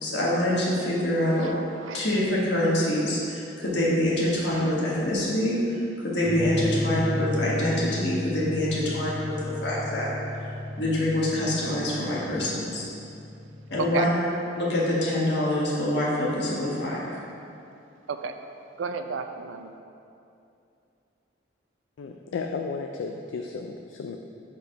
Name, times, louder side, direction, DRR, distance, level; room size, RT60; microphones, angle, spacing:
voice 1, 0.0-1.5 1.9-10.1 10.8-12.8 13.7-14.1 14.6-17.0, left 1 dB, 65° left, -6 dB, 1.4 m, -25 dB
voice 2, 1.4-2.1 13.8-14.1 18.1-18.3 18.8-19.7, right 5 dB, 85° right, 7 dB, 0.4 m, -32 dB
sound 1, 6.2-13.9, left 1 dB, 30° left, 1.1 m, -34 dB
voice 3, 22.0-24.2, left 4 dB, 80° left, 3 dB, 0.3 m, -33 dB
5.3 x 4.6 x 5.0 m, 2.6 s
head